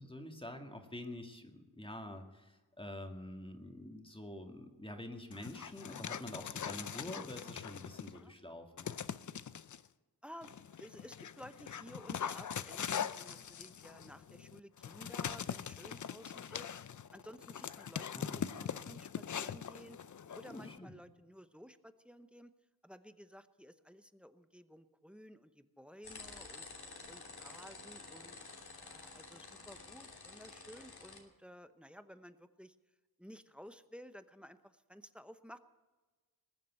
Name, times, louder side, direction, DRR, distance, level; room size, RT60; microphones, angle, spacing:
voice 1, 0.0-8.9 18.2-18.7 20.5-20.9, left 1 dB, 15° left, 4 dB, 2.0 m, -47 dB
Dog, 5.3-8.2 8.8-9.8 10.4-20.8, left 8 dB, 55° left, 0.6 m, -42 dB
voice 2, 10.8-16.7 17.1-20.0 20.3-22.5 22.8-26.7 27.1-28.4 28.8-32.8 33.2-35.6, equal, 5° right, 11 dB, 0.8 m, -54 dB
sound 1, 26.0-31.2, left 3 dB, 85° left, 3.0 m, -51 dB
20.5 x 7.4 x 9.2 m, 1.2 s
wide cardioid pair, 125°, 37 cm